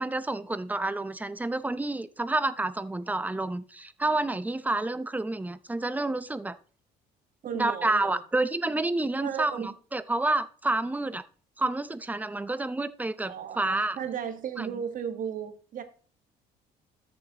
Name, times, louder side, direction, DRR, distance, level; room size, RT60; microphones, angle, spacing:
voice 1, 0.0-6.6 7.5-11.2 11.6-14.0 14.6-14.7, right 2 dB, 10° right, 0.6 m, -29 dB
voice 2, 7.4-8.2 9.2-9.7 13.3-15.8, right 8 dB, 50° right, 1.5 m, -35 dB
13.5 x 6.9 x 2.9 m
cardioid pair, 110°, 17 cm